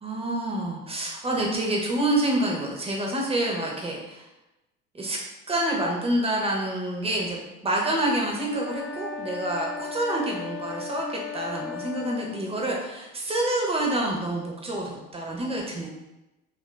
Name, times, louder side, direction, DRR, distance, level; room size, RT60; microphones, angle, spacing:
voice 1, 0.0-4.2 4.9-5.2 5.5-15.9, right 1 dB, 15° right, -1 dB, 0.6 m, -27 dB
sound 1, 8.5-12.4, left 6 dB, 25° left, 0.3 m, -36 dB
3.0 x 2.5 x 3.2 m, 0.98 s
figure-of-eight pair, 75°, 47 cm